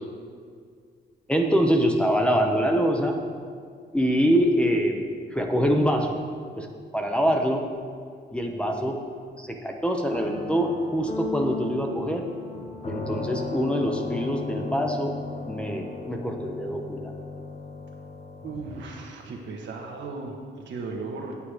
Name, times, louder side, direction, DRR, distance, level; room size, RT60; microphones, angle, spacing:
voice 1, 1.3-3.2 3.9-6.2 6.6-6.7 6.9-7.7 8.3-9.0 9.4-12.2 12.8-15.2 15.4-17.1, equal, 5° left, 3 dB, 0.8 m, -24 dB
sound 1, 10.1-19.2, left 3 dB, 35° left, 0.9 m, -36 dB
voice 2, 18.4-21.4, right 3 dB, 85° right, 1 dB, 1.5 m, -36 dB
8.6 x 8.6 x 4.9 m, 2.1 s
cardioid pair, 130°, 19 cm